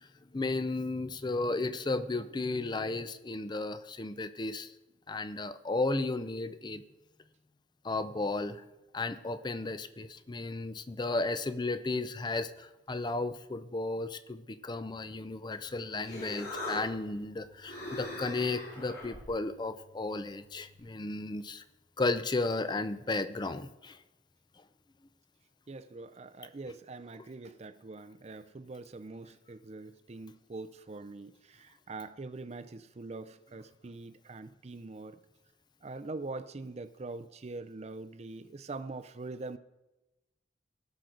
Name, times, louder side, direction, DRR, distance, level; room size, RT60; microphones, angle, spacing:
voice 1, 0.3-4.7 5.1-6.8 7.8-8.6 8.9-21.6 22.0-24.0, left 2 dB, 25° left, 13 dB, 0.5 m, -34 dB
Human voice, 15.6-20.8, left 1 dB, 60° left, 3.1 m, -43 dB
voice 2, 25.7-35.2 35.8-39.6, right 3 dB, 35° right, 11 dB, 0.5 m, -43 dB
16.0 x 6.4 x 3.9 m, 0.99 s
head